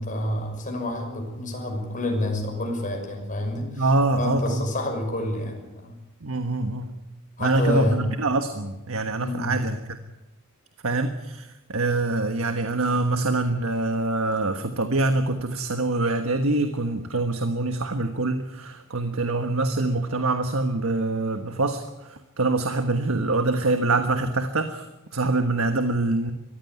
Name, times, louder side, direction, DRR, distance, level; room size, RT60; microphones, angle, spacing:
voice 1, 0.0-3.9 4.2-6.0 7.4-8.0 9.1-9.6, left 1 dB, 40° left, 3 dB, 6.1 m, -28 dB
voice 2, 3.7-4.6 6.2-7.0 7.4-9.8 10.8-26.3, right 2 dB, 80° right, 7 dB, 1.4 m, -25 dB
22.0 x 15.5 x 9.5 m, 1.0 s
head